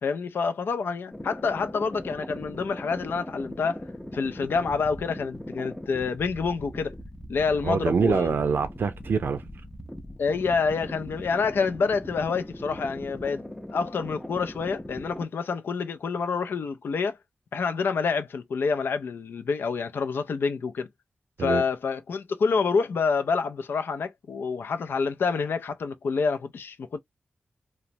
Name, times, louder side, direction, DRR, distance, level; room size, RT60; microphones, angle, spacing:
voice 1, 0.0-3.8 4.1-7.0 7.3-8.4 10.2-13.4 13.7-17.2 17.5-20.9 21.4-27.0, left 5 dB, 80° left, 0.4 m, -27 dB
sound 1, 1.1-15.2, left 1 dB, 5° left, 0.5 m, -40 dB
voice 2, 7.6-9.4 21.4-21.6, right 5 dB, 70° right, 0.5 m, -25 dB
3.0 x 2.0 x 2.6 m
wide cardioid pair, 125°, 4 cm